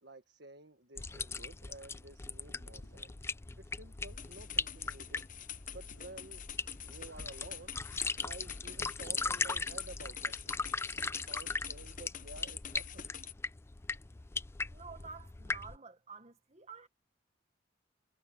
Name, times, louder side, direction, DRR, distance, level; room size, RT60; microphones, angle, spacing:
voice 1, 0.0-3.1 3.6-5.2 5.7-6.5 6.8-7.8 8.2-10.6 11.0-13.1, right 2 dB, 60° right, 1.8 m, -52 dB
sound 1, 1.0-15.8, left 4 dB, 15° left, 0.3 m, -39 dB
sound 2, 2.8-12.3, left 1 dB, 85° left, 3.3 m, -63 dB
sound 3, 4.1-13.3, left 10 dB, 45° left, 1.0 m, -47 dB
voice 2, 14.7-16.9, right 5 dB, 35° right, 1.6 m, -50 dB
head